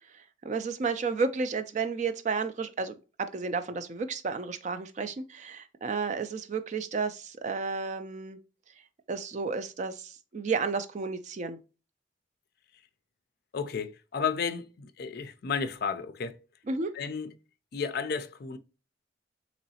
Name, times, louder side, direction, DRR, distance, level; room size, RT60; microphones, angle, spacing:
voice 1, 0.1-8.4 9.1-11.6 16.7-16.9, right 4 dB, 40° right, 0.3 m, -32 dB
voice 2, 13.5-16.4 16.9-17.3 17.7-18.6, left 6 dB, 50° left, 0.4 m, -32 dB
3.8 x 3.0 x 2.7 m
head